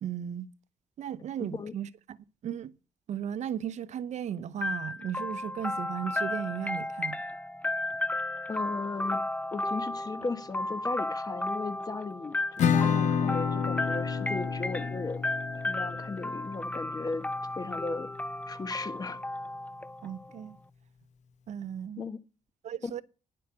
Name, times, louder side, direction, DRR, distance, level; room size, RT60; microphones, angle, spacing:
voice 1, 0.0-0.5 1.0-2.2 2.4-2.7 3.1-7.2 20.0-20.6 21.5-22.1 22.6-23.0, right 9 dB, 70° right, 0.7 m, -36 dB
voice 2, 1.4-1.7 8.5-9.2 9.5-15.2 15.7-17.2 17.5-18.1 18.5-19.2 22.0-22.2, left 3 dB, 30° left, 1.4 m, -36 dB
sound 1, 4.6-20.4, left 2 dB, 10° left, 0.6 m, -34 dB
Acoustic guitar / Strum, 12.6-18.0, left 7 dB, 75° left, 1.3 m, -30 dB
10.5 x 7.9 x 6.1 m
cardioid pair, 100°, 12 cm